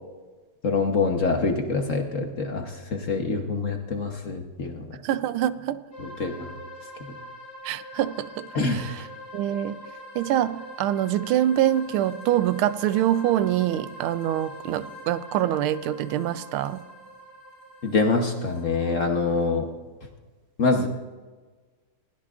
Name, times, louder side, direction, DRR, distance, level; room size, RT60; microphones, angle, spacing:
voice 1, 0.6-5.0 6.0-6.6 7.1-7.2 8.5-9.1 17.8-19.7 20.6-20.9, left 3 dB, 45° left, 3 dB, 1.2 m, -25 dB
voice 2, 5.0-5.8 7.6-9.0 9.3-9.8 10.1-16.8, right 12 dB, 85° right, 14 dB, 1.4 m, -25 dB
sound 1, 5.9-19.5, equal, 15° left, 5.5 m, -43 dB
21.0 x 16.0 x 2.5 m, 1.3 s
omnidirectional pair, 2.3 m